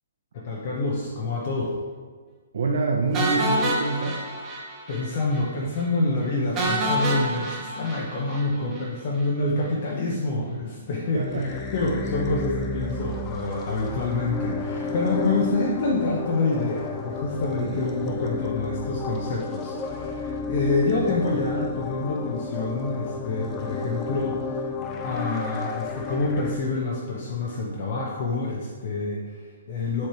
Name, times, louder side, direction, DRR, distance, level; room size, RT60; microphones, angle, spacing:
voice 1, 0.3-1.8 4.9-24.7 25.0-30.1, left 2 dB, 40° left, -3 dB, 0.8 m, -27 dB
voice 2, 2.5-4.2 11.1-11.6 17.6-17.8, right 3 dB, 65° right, -1 dB, 0.7 m, -26 dB
sound 1, 3.1-5.1 5.3-5.4 5.8-5.9 6.6-8.9, right 1 dB, 15° right, 0.9 m, -27 dB
sound 2, 11.1-26.6, left 4 dB, 20° left, 0.4 m, -32 dB
7.5 x 3.3 x 4.4 m, 1.5 s
hypercardioid pair, 170°, 0 cm